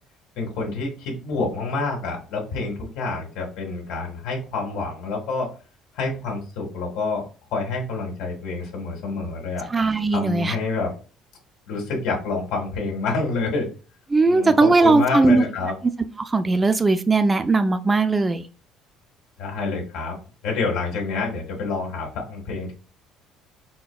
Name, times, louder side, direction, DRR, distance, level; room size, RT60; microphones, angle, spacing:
voice 1, 0.4-5.5 6.0-7.2 7.5-9.7 10.1-10.9 11.7-13.7 14.3-15.7 19.4-20.2 20.4-22.7, left 3 dB, 80° left, 0 dB, 1.6 m, -27 dB
voice 2, 9.7-10.6 14.1-15.4 16.3-18.4, right 3 dB, 15° right, 9 dB, 0.3 m, -18 dB
4.5 x 4.2 x 2.3 m, 0.36 s
cardioid pair, 155°, 0 cm